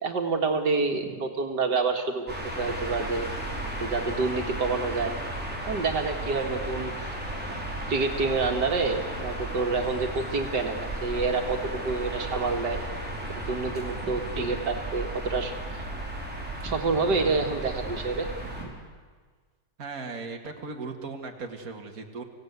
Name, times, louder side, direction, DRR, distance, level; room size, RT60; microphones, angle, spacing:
voice 1, 0.0-3.3 3.8-5.2 5.7-7.2 7.9-12.8 13.3-15.8 16.6-18.3 18.6-18.7, right 4 dB, 85° right, 4 dB, 2.4 m, -28 dB
sound 1, 2.3-18.6, right 1 dB, 5° right, 4.4 m, -34 dB
voice 2, 19.8-22.2, right 4 dB, 55° right, 3 dB, 2.4 m, -37 dB
25.5 x 16.5 x 9.6 m, 1.5 s
omnidirectional pair, 1.8 m